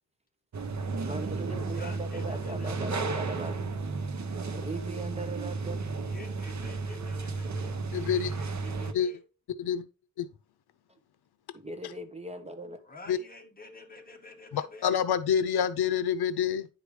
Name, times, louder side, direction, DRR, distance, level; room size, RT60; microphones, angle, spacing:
sound 1, 0.5-8.9, right 3 dB, 50° right, 1.0 m, -33 dB
voice 1, 0.9-3.5 4.5-5.8 10.9-11.0 11.5-12.8, right 2 dB, 15° right, 1.0 m, -39 dB
voice 2, 1.7-3.4 6.0-9.2 12.9-14.9, left 2 dB, 25° left, 1.7 m, -49 dB
voice 3, 7.9-8.3 8.9-9.1 9.6-9.9 10.2-10.3 13.1-13.2 14.5-16.7, left 8 dB, 85° left, 0.7 m, -27 dB
10.0 x 4.9 x 3.2 m
wide cardioid pair, 110°, 37 cm